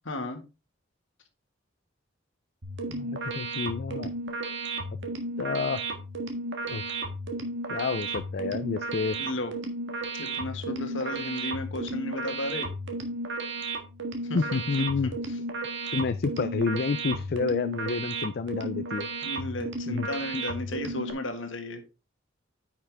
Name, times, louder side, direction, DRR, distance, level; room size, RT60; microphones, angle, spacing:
voice 1, 0.1-0.4 9.2-9.5 10.2-12.7 14.2-14.4 19.2-21.8, left 1 dB, 70° left, 6 dB, 1.6 m, -34 dB
sound 1, 2.6-21.1, right 2 dB, 65° right, 1.6 m, -34 dB
voice 2, 2.9-4.1 5.4-5.8 6.7-6.8 7.7-9.2 14.3-15.1 15.9-19.1 19.9-20.1, left 4 dB, 55° left, 12 dB, 0.4 m, -29 dB
9.7 x 5.8 x 3.4 m, 0.29 s
head